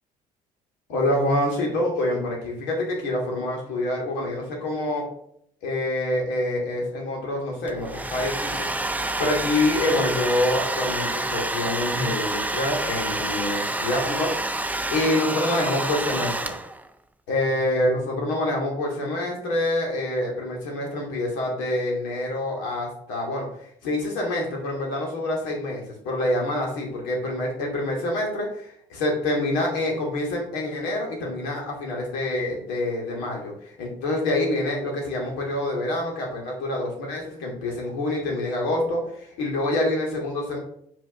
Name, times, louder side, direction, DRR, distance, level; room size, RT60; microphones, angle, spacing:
voice 1, 0.9-5.0 5.6-8.7 9.2-14.3 14.9-16.6 17.3-40.6, left 1 dB, 80° left, -1 dB, 2.4 m, -26 dB
Domestic sounds home sounds, 7.7-16.9, right 2 dB, 10° right, 0.7 m, -28 dB
5.4 x 5.2 x 5.9 m, 0.70 s
hypercardioid pair, 55°, 18 cm